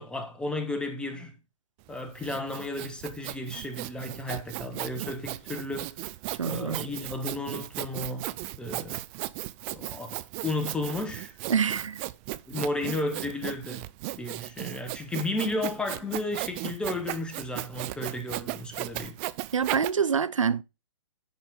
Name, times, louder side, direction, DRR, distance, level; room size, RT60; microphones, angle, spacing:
voice 1, 0.0-1.3 1.9-5.9 6.4-8.3 8.6-9.0 9.7-11.3 12.5-13.9 14.2-19.2, left 2 dB, 5° left, 1.0 m, -33 dB
Sawing, 1.9-19.9, right 18 dB, 20° right, 0.4 m, -36 dB
voice 2, 6.4-6.9 11.5-12.0 19.5-20.6, right 7 dB, 75° right, 0.7 m, -26 dB
10.5 x 4.3 x 3.6 m
figure-of-eight pair, 130°, 16 cm